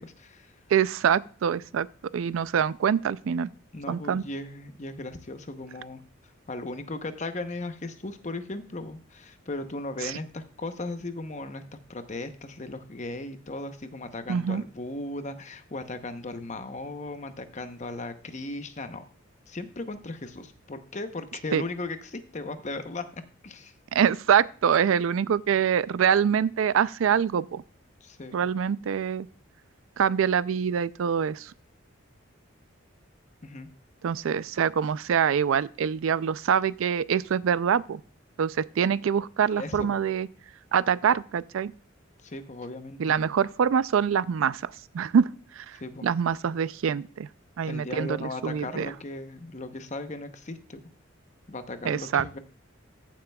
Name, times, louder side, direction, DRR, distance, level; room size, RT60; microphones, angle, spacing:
voice 1, 0.0-0.5 3.7-6.0 6.5-19.1 19.5-23.7 28.0-28.4 33.4-33.7 39.6-39.9 42.2-43.2 45.8-46.1 47.7-50.8 51.5-52.4, left 2 dB, 35° left, 0.8 m, -37 dB
voice 2, 0.7-1.9 2.1-3.5 3.9-4.2 10.0-10.1 14.3-14.6 21.5-21.6 23.9-27.6 28.3-29.3 30.0-31.5 34.0-38.0 38.4-40.3 40.7-41.7 43.0-45.3 45.6-45.8 46.0-47.3 47.6-48.9 51.9-52.2, right 7 dB, 75° right, 0.4 m, -25 dB
14.5 x 7.4 x 2.3 m
head